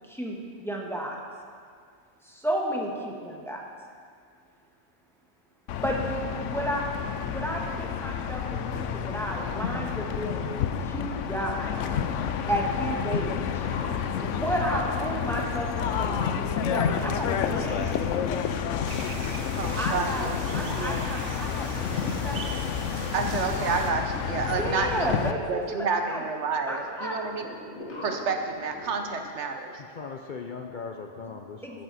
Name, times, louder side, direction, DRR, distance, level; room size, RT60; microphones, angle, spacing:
voice 1, 0.1-1.2 2.2-3.6 5.8-10.3 10.8-11.7 12.5-13.7 14.2-18.1 19.5-20.3 20.5-21.7 22.0-22.4 24.6-26.2 26.7-27.2 31.6-31.8, right 1 dB, ahead, -2 dB, 1.3 m, -32 dB
sound 1, 5.7-25.3, left 8 dB, 90° left, 1.0 m, -30 dB
sound 2, 13.6-29.3, left 1 dB, 65° left, 2.2 m, -43 dB
sound 3, 18.9-23.9, right 4 dB, 55° right, 1.0 m, -40 dB
voice 2, 19.6-20.4 20.8-21.1 23.1-27.5 28.0-29.7, right 4 dB, 70° right, 4 dB, 1.2 m, -29 dB
voice 3, 29.8-31.8, left 5 dB, 50° left, 3 dB, 0.6 m, -39 dB
14.0 x 9.3 x 4.1 m, 2.1 s
omnidirectional pair, 1.2 m